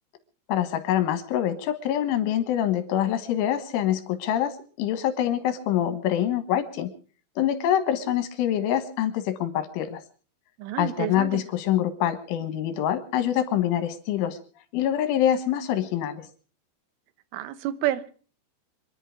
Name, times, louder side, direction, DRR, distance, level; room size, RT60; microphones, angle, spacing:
voice 1, 0.5-6.9 7.4-10.0 10.8-14.4 14.7-16.3, left 11 dB, 85° left, 10 dB, 4.0 m, -25 dB
voice 2, 10.6-11.4 17.3-18.1, right 13 dB, 85° right, 15 dB, 3.5 m, -29 dB
26.5 x 11.0 x 4.9 m, 0.41 s
omnidirectional pair, 5.6 m